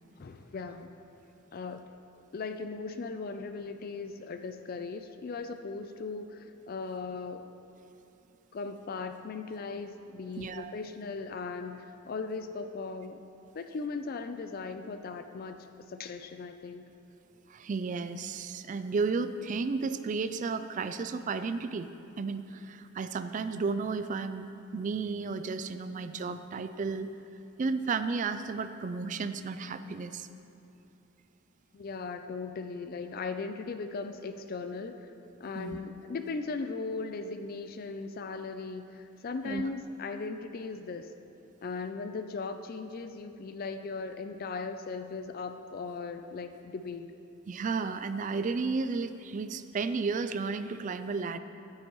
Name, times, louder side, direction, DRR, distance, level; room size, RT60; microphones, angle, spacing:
voice 1, 0.2-1.0 1.5-1.8 2.3-7.5 8.5-13.2 13.5-16.8 31.7-35.1 35.4-41.1 41.6-47.1, left 4 dB, 45° left, 8 dB, 0.4 m, -38 dB
voice 2, 10.4-10.7 17.5-21.9 22.2-27.1 27.6-30.3 35.5-35.8 39.4-39.6 47.5-51.4, right 4 dB, 35° right, 11 dB, 0.3 m, -33 dB
14.0 x 9.5 x 3.1 m, 2.8 s
head